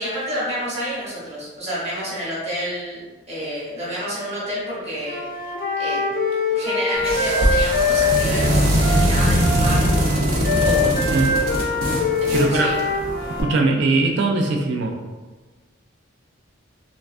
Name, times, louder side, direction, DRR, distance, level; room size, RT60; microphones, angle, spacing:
voice 1, 0.0-3.0 3.3-5.2 5.8-6.0 6.5-9.8 10.6-11.0 12.2-12.7, equal, 30° right, -7 dB, 0.8 m, -28 dB
Wind instrument woodwind instrument, 5.0-13.6, left 4 dB, 40° left, 0.4 m, -24 dB
sound 1, 7.0-13.4, equal, 85° right, 0.7 m, -21 dB
voice 2, 12.3-12.7 13.4-15.0, right 3 dB, 60° right, 2 dB, 0.3 m, -20 dB
3.4 x 2.2 x 2.4 m, 1.3 s
head